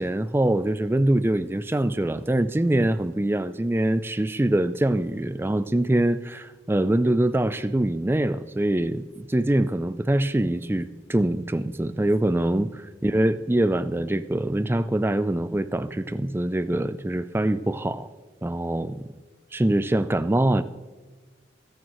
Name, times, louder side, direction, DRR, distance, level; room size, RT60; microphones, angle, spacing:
voice 1, 0.0-18.1 18.4-19.1 19.5-20.6, right 1 dB, 10° right, 13 dB, 0.3 m, -24 dB
23.0 x 8.8 x 3.0 m, 1.3 s
head